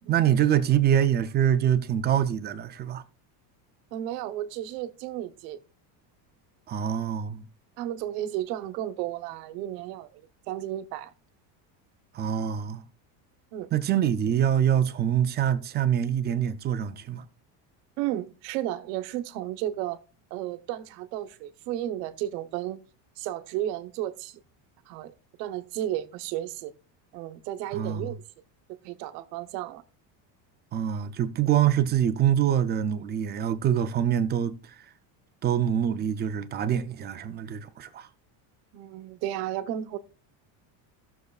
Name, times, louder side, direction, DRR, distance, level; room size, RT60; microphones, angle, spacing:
voice 1, 0.1-3.0 6.7-7.4 12.1-12.8 13.7-17.2 27.7-28.1 30.7-34.8 35.4-38.1, right 10 dB, 25° right, 0.3 m, -25 dB
voice 2, 3.9-5.6 7.8-10.2 10.5-11.1 13.5-13.7 18.0-20.0 20.3-22.8 23.2-24.4 24.9-25.1 25.4-26.7 27.1-28.2 28.7-29.8 38.7-40.0, right 13 dB, 90° right, 1.0 m, -33 dB
16.0 x 6.6 x 2.3 m
cardioid pair, 155°, 48 cm